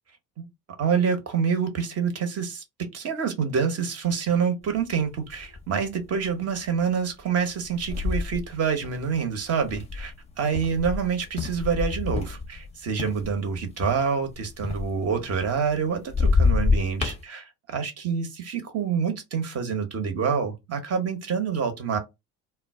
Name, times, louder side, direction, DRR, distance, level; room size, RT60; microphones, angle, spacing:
voice 1, 0.8-22.0, right 6 dB, 30° right, 0.9 m, -27 dB
sound 1, 4.8-4.9 5.3-5.8 6.3-6.5 7.4-12.7 13.0-15.8 16.1-17.2, left 4 dB, 15° left, 0.7 m, -27 dB
2.2 x 2.1 x 3.5 m
figure-of-eight pair, 60°, 48 cm